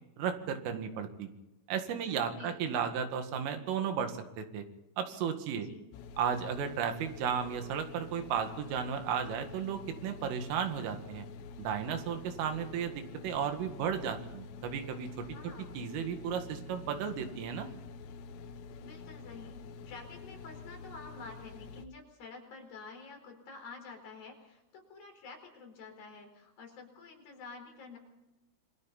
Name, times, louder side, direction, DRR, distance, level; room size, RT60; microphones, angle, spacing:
voice 1, 0.2-1.3 1.7-4.6 5.0-5.7 6.2-11.3 11.6-15.1 15.8-17.7, right 7 dB, 75° right, 6 dB, 4.4 m, -34 dB
voice 2, 2.1-2.6 5.5-5.9 15.2-15.7 18.8-28.0, left 4 dB, 45° left, 2 dB, 6.0 m, -49 dB
sound 1, 5.9-21.9, left 5 dB, 75° left, 3.4 m, -48 dB
28.0 x 23.0 x 4.2 m, 0.95 s
omnidirectional pair, 6.0 m